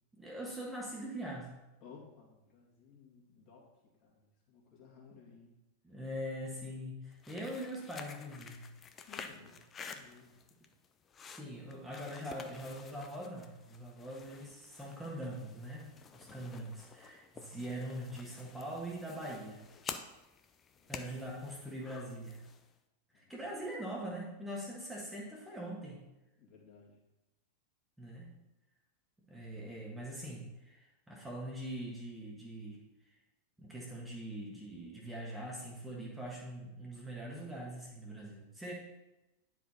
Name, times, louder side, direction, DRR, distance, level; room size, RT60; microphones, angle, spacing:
voice 1, 0.2-1.5 5.8-8.7 11.3-19.6 20.9-22.5 23.1-26.0 28.0-28.3 29.3-32.8 33.6-38.7, right 1 dB, 5° right, -3 dB, 1.5 m, -43 dB
voice 2, 1.8-5.5 5.9-6.0 9.0-10.4 11.5-11.6 16.1-16.4 20.7-21.0 23.1-23.4 26.4-27.0, left 5 dB, 40° left, -3 dB, 2.3 m, -58 dB
sound 1, 7.1-22.7, left 6 dB, 25° left, 0.6 m, -50 dB
9.9 x 4.7 x 4.2 m, 0.98 s
figure-of-eight pair, 90°, 0 cm